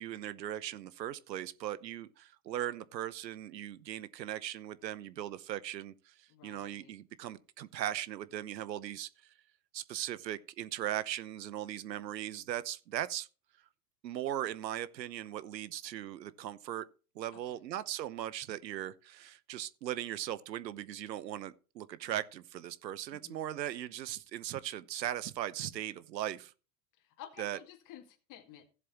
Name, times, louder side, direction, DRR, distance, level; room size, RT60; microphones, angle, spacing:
voice 1, 0.0-9.3 9.7-13.3 14.0-16.9 17.1-26.5 27.4-27.6, right 12 dB, 85° right, 1.0 m, -39 dB
voice 2, 6.3-7.0 17.3-17.7 23.1-23.5 27.0-28.6, left 10 dB, 40° left, 2.0 m, -53 dB
16.0 x 7.6 x 2.9 m
hypercardioid pair, 110°, 49 cm